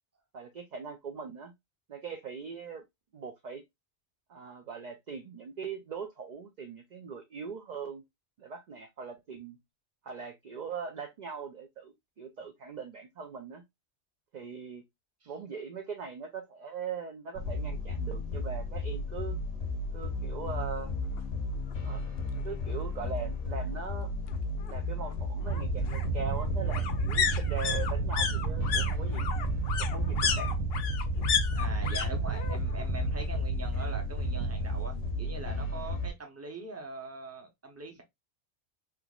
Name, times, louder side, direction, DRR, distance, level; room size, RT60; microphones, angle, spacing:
voice 1, 0.3-1.5 1.9-2.8 3.1-3.6 4.3-8.0 8.4-9.6 10.0-13.6 14.3-14.8 15.3-19.4 19.9-20.9 21.8-22.0 22.4-24.1 24.7-29.3 29.8-30.5, right 6 dB, 55° right, 0.5 m, -41 dB
sound 1, 17.3-36.1, left 2 dB, 90° left, 1.3 m, -34 dB
sound 2, 21.2-21.3 21.6-21.7 22.0-23.0 24.3-32.1 32.3-32.9 33.2-34.2 34.5-34.6, left 7 dB, 65° left, 0.8 m, -33 dB
sound 3, 25.5-35.5, right 6 dB, 80° right, 0.9 m, -33 dB
voice 2, 31.5-38.0, right 3 dB, 15° right, 0.7 m, -42 dB
3.6 x 2.9 x 2.3 m
omnidirectional pair, 1.2 m